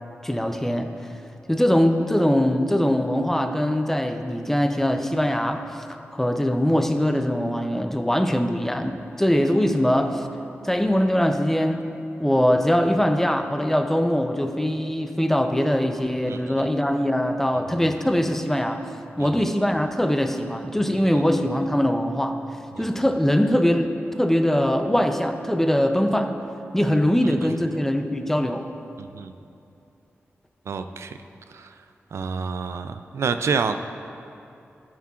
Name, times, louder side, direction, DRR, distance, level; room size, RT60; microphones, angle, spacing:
voice 1, 0.2-0.9 1.5-5.7 6.1-10.3 10.6-11.9 12.2-18.8 19.2-22.4 22.8-26.4 26.7-28.7, equal, 5° left, 7 dB, 0.5 m, -22 dB
voice 2, 16.3-16.7 17.7-17.8 19.2-19.3 22.7-22.8 27.2-27.3 29.0-29.3 30.7-31.2 31.5-31.7 32.1-33.7, right 5 dB, 80° right, 9 dB, 0.3 m, -28 dB
13.0 x 7.3 x 2.4 m, 2.7 s
cardioid pair, 65°, 5 cm